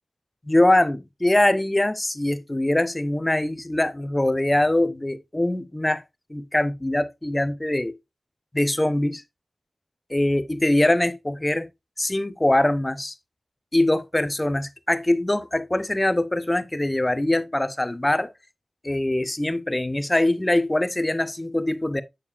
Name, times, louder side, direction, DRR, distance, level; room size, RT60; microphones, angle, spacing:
voice 1, 0.4-6.0 6.3-7.9 8.5-9.2 10.1-11.7 12.0-13.2 13.7-18.3 18.8-22.0, left 1 dB, 20° left, 0.7 m, -23 dB
7.2 x 6.6 x 2.4 m
cardioid pair, 50°, 0 cm